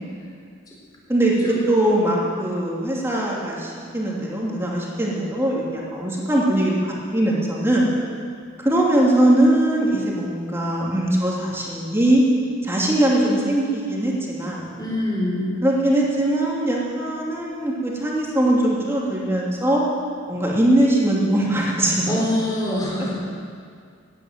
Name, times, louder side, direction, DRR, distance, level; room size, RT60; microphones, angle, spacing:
voice 1, 1.7-7.9 8.6-12.2 12.6-14.7 15.6-19.8 20.3-22.1, right 1 dB, 10° right, -4 dB, 2.8 m, -21 dB
voice 2, 14.8-15.5 22.0-23.2, left 1 dB, 20° left, -4 dB, 4.2 m, -24 dB
15.0 x 10.0 x 9.3 m, 2.2 s
head